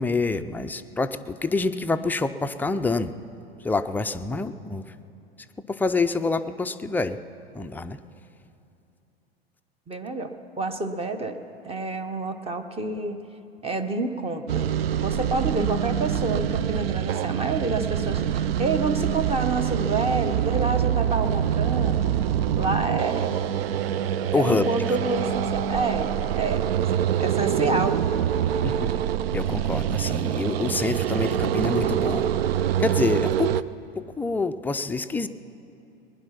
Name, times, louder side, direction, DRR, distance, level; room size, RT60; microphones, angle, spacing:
voice 1, 0.0-3.2 3.6-4.8 5.7-7.2 7.5-8.0 24.3-24.7 28.6-28.9 29.3-32.2 32.8-33.6 34.0-35.3, left 3 dB, 5° left, 8 dB, 0.4 m, -26 dB
voice 2, 9.9-11.4 11.6-13.2 13.6-14.7 15.0-22.0 22.6-23.3 24.3-26.6 26.9-28.0, right 3 dB, 20° right, 9 dB, 1.0 m, -28 dB
sound 1, 14.5-33.6, right 9 dB, 70° right, 0.5 m, -25 dB
20.5 x 10.0 x 5.8 m, 2.8 s
figure-of-eight pair, 85°, 31 cm